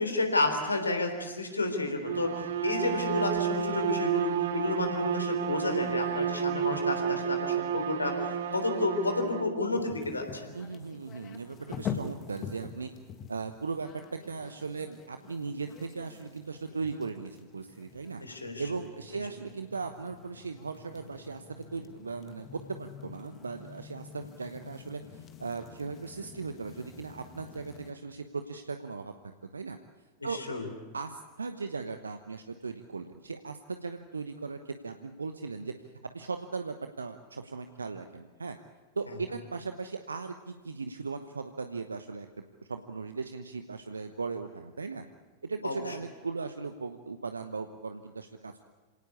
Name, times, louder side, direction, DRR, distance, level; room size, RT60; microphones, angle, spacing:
voice 1, 0.0-2.3 2.6-8.1 8.5-10.5 18.2-18.6 30.2-30.7 45.6-45.8, left 2 dB, 80° left, 5 dB, 3.7 m, -30 dB
Bowed string instrument, 2.0-9.5, right 8 dB, 60° right, 1.5 m, -31 dB
sound 1, 9.7-27.9, left 7 dB, 30° left, 1.9 m, -46 dB
voice 2, 10.5-12.9 13.3-18.2 18.6-29.1 29.5-29.8 30.2-30.4 30.9-35.7 36.1-38.6 39.0-42.3 42.7-45.0 45.4-48.6, right 4 dB, 75° right, 8 dB, 1.0 m, -38 dB
26.5 x 18.0 x 8.4 m, 1.4 s
figure-of-eight pair, 90°, 0 cm